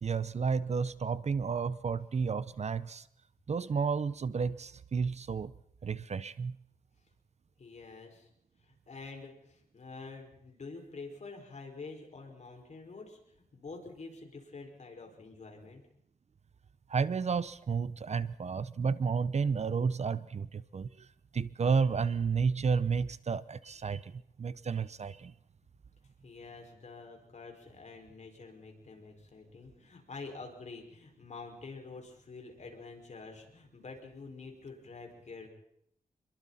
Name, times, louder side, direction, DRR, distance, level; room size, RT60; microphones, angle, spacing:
voice 1, 0.0-3.0 3.5-5.5 5.8-6.6 16.9-20.9 21.3-24.1 24.4-25.3, right 5 dB, 50° right, 16 dB, 0.7 m, -31 dB
voice 2, 7.6-8.3 8.6-15.8 26.2-35.5, left 4 dB, 50° left, 2 dB, 5.5 m, -47 dB
28.0 x 22.5 x 4.3 m, 0.70 s
wide cardioid pair, 110°, 15 cm